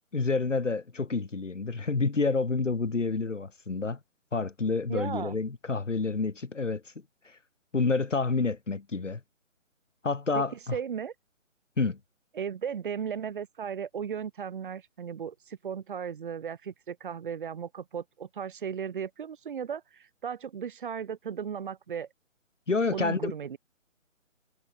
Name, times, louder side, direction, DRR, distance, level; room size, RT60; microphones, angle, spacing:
voice 1, 0.1-4.0 4.3-6.8 7.2-7.3 7.7-9.2 10.0-10.8 11.8-12.0 22.7-23.3, left 4 dB, 65° left, 3.3 m, -28 dB
voice 2, 4.9-5.4 10.3-11.1 12.3-22.1 22.9-23.6, right 7 dB, 40° right, 7.4 m, -36 dB
figure-of-eight pair, 145°, 39 cm